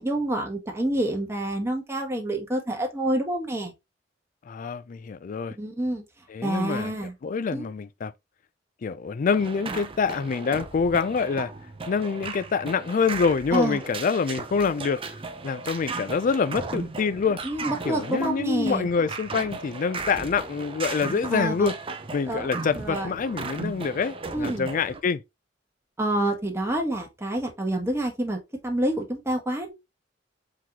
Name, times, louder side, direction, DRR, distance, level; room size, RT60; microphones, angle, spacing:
voice 1, 0.0-3.7 5.6-6.0 6.4-7.1 7.5-7.7 13.5-13.8 17.4-18.9 21.3-21.7 22.3-22.5 22.8-23.1 24.3-24.6 26.0-29.7, right 1 dB, 15° right, 1.2 m, -27 dB
voice 2, 4.5-5.6 6.3-6.9 7.2-8.1 8.8-11.5 11.9-15.0 15.4-17.4 17.8-21.7 22.1-25.2, left 5 dB, 45° left, 0.4 m, -26 dB
sound 1, 9.3-25.0, right 3 dB, 30° right, 0.6 m, -36 dB
4.6 x 3.8 x 2.8 m
head